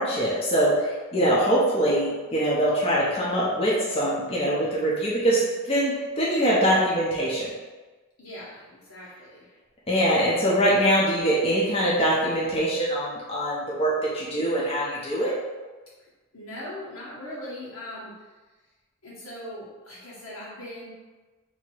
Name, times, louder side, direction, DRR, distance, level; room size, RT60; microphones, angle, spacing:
voice 1, 0.0-7.5 9.9-15.3, right 1 dB, 30° left, -6 dB, 0.7 m, -23 dB
voice 2, 8.2-9.4 16.3-18.1 19.0-20.9, left 1 dB, 85° left, -7 dB, 1.5 m, -40 dB
2.9 x 2.9 x 4.5 m, 1.2 s
head